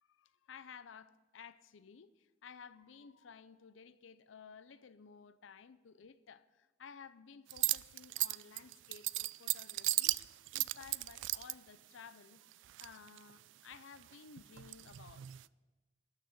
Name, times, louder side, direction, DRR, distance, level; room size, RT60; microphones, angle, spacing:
voice 1, 0.0-10.2 10.5-12.4 12.8-15.3, left 6 dB, 80° left, 0.5 m, -55 dB
sound 1, 7.5-11.5 12.5-13.3 13.7-15.4, right 19 dB, 70° right, 0.3 m, -36 dB
13.0 x 6.5 x 7.7 m
head